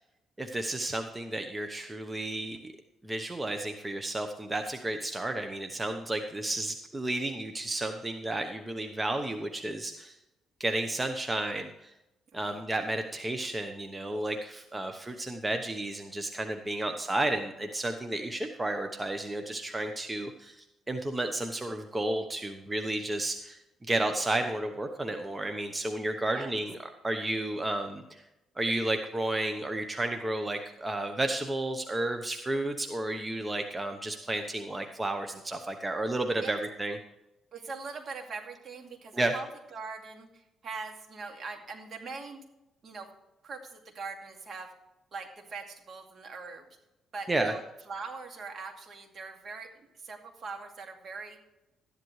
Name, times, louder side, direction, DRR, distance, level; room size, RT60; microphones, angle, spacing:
voice 1, 0.4-2.7 3.0-10.2 10.6-11.9 12.3-23.6 23.9-26.8 27.0-28.2 28.6-37.0 39.1-39.3 47.3-47.5, right 2 dB, 20° right, 6 dB, 1.0 m, -32 dB
voice 2, 37.5-39.5 39.7-42.4 42.8-43.1 43.4-44.7 45.1-46.7 47.1-51.4, right 4 dB, 55° right, 3 dB, 2.4 m, -42 dB
13.5 x 10.5 x 3.3 m, 0.92 s
cardioid pair, 90°, 0 cm